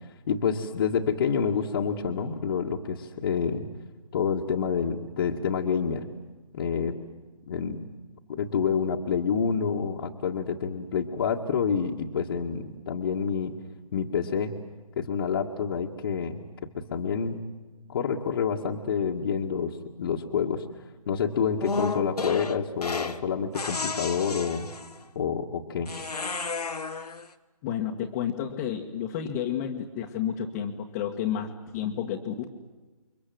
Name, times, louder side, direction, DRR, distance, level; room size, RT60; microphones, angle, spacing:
voice 1, 0.3-3.7 4.1-6.0 6.5-7.0 7.5-7.9 8.3-13.6 13.9-14.5 15.0-17.4 17.9-20.6 21.1-24.7 25.2-25.9, left 6 dB, 40° left, -2 dB, 2.0 m, -28 dB
sound 1, 21.6-23.2 23.5-25.0 25.9-27.3, left 4 dB, 85° left, 1.8 m, -32 dB
voice 2, 27.6-32.5, left 9 dB, 20° left, -1 dB, 1.7 m, -31 dB
30.0 x 24.5 x 7.8 m, 1.2 s
figure-of-eight pair, 155°, 19 cm